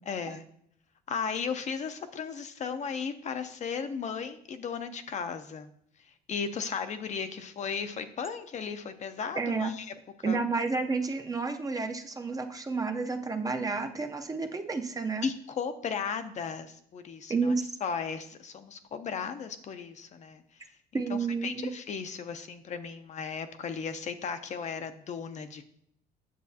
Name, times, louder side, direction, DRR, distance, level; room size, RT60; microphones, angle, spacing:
voice 1, 0.1-0.4 1.1-5.7 6.3-9.9 10.2-10.4 15.2-17.5 17.8-20.4 20.9-25.6, left 6 dB, 45° left, 8 dB, 0.6 m, -35 dB
voice 2, 9.4-9.7 10.2-15.3 17.3-17.6 20.9-21.7, right 4 dB, 20° right, 5 dB, 0.6 m, -30 dB
8.6 x 6.9 x 2.8 m, 0.71 s
cardioid pair, 110°, 17 cm